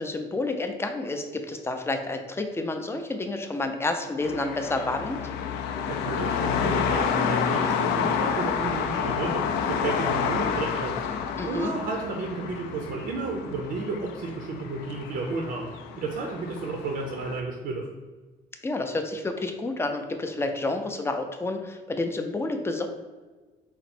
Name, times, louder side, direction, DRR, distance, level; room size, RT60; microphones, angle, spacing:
voice 1, 0.0-5.2 11.4-11.7 18.6-22.9, left 2 dB, 15° left, 5 dB, 0.4 m, -29 dB
sound 1, 4.2-17.4, left 7 dB, 90° left, 0.4 m, -29 dB
voice 2, 5.6-11.0 11.4-17.9, right 3 dB, 60° right, 1 dB, 0.5 m, -32 dB
4.2 x 2.0 x 4.2 m, 1.3 s
cardioid pair, 110°, 17 cm